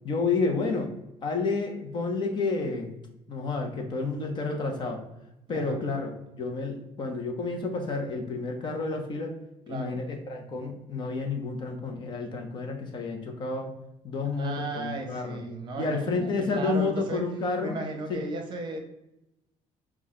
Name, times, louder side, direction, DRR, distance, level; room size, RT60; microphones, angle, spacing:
voice 1, 0.0-0.9 1.2-2.9 3.3-5.0 5.5-9.3 9.7-13.7 14.0-15.4 15.8-17.8 18.1-18.2, left 3 dB, 40° left, 3 dB, 0.8 m, -30 dB
voice 2, 9.7-10.0 14.3-17.3 17.6-18.8, right 3 dB, 40° right, 3 dB, 0.9 m, -35 dB
6.1 x 2.4 x 3.6 m, 0.87 s
cardioid pair, 150°, 13 cm